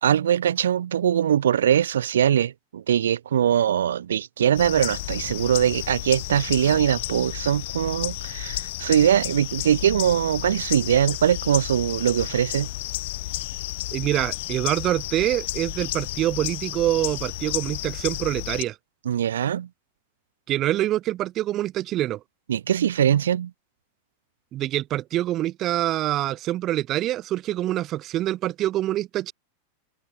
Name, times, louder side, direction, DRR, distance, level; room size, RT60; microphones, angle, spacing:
voice 1, 0.0-12.7 19.0-19.7 22.5-23.5, right 9 dB, 65° right, 2.7 m, -22 dB
sound 1, 4.5-18.6, left 18 dB, 50° left, 3.9 m, -32 dB
voice 2, 13.9-18.8 20.5-22.2 24.5-29.3, right 14 dB, 35° right, 3.3 m, -25 dB
open air
figure-of-eight pair, 90°, 0 cm